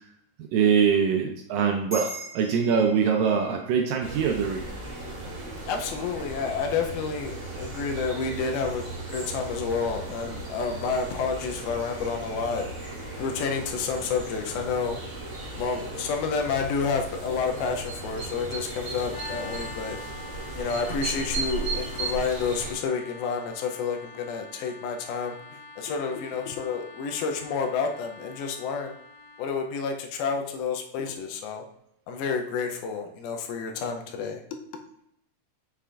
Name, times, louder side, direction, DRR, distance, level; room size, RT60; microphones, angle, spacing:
voice 1, 0.5-4.6, right 6 dB, 80° right, 3 dB, 2.0 m, -23 dB
sound 1, 1.9-6.6, right 2 dB, 25° right, 1.5 m, -43 dB
sound 2, 4.0-22.7, right 3 dB, 45° right, 1.6 m, -36 dB
voice 2, 5.3-15.0 15.6-20.0 20.5-29.0 29.4-31.6 32.1-34.4, left 5 dB, 80° left, 4 dB, 2.5 m, -30 dB
sound 3, 19.1-29.7, left 3 dB, 60° left, 2.9 m, -45 dB
6.7 x 5.8 x 2.4 m, 0.76 s
omnidirectional pair, 4.4 m